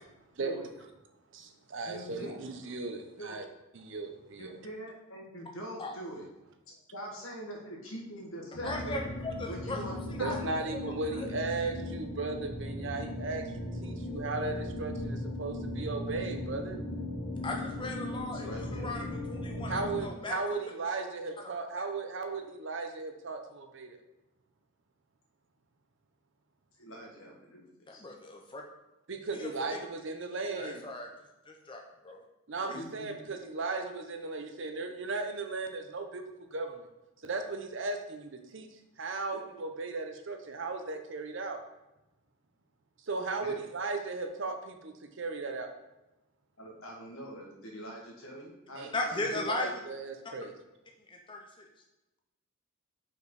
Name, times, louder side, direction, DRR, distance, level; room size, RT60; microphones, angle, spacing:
voice 1, 1.3-3.4 3.7-4.6 10.2-13.4 13.8-16.8 19.7-24.0 29.1-30.8 32.5-36.2 36.5-36.9 37.2-38.7 39.0-41.6 43.1-45.7 48.7-48.9 49.2-50.5, right 3 dB, 55° right, 5 dB, 0.7 m, -36 dB
voice 2, 1.8-2.5 3.2-3.4 4.4-6.2 6.9-9.0 9.5-10.4 18.4-18.9 26.8-28.0 32.7-33.3 43.4-43.6 46.6-49.4, equal, 70° left, -1 dB, 1.5 m, -43 dB
sound 1, 8.5-20.0, left 1 dB, 90° left, 1.6 m, -38 dB
voice 3, 8.6-9.8 10.1-10.4 11.2-11.3 17.4-20.4 27.9-28.6 29.3-29.5 30.6-31.1 31.5-32.2 32.6-32.8 46.8-46.9 48.9-49.7 51.1-51.4, left 2 dB, 20° left, 1 dB, 0.6 m, -37 dB
5.3 x 4.5 x 4.7 m, 0.98 s
head